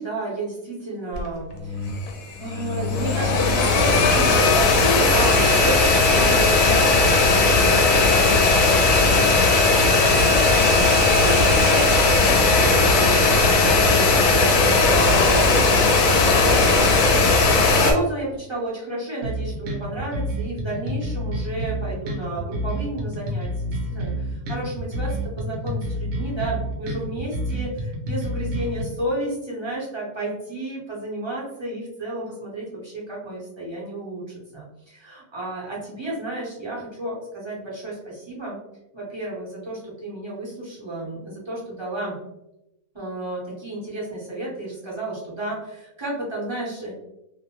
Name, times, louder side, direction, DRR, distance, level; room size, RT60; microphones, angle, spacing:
voice 1, 0.0-2.1 2.4-34.2 34.5-38.6 38.9-42.2 42.9-46.9, right 2 dB, 25° right, -7 dB, 0.6 m, -32 dB
sound 1, 1.1-1.3 1.6-2.1 2.4-17.9, left 3 dB, 75° left, 0.9 m, -17 dB
sound 2, 19.2-28.8, equal, 60° right, 0.8 m, -28 dB
2.6 x 2.1 x 2.8 m, 0.89 s
omnidirectional pair, 1.5 m